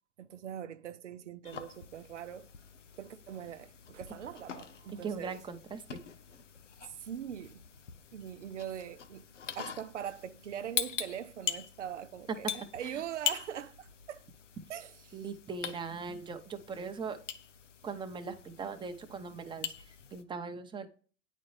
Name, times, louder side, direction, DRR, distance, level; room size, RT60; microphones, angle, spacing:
voice 1, 0.2-2.5 3.0-5.4 6.9-7.7 8.1-9.3 9.5-14.3 14.7-15.2, right 9 dB, 80° right, 0.7 m, -42 dB
sound 1, 1.4-20.2, left 8 dB, 90° left, 0.7 m, -43 dB
voice 2, 5.0-6.0 12.8-13.0 15.1-17.2 17.8-20.9, right 5 dB, 15° right, 0.8 m, -40 dB
9.3 x 4.2 x 3.2 m
hypercardioid pair, 95°, 36 cm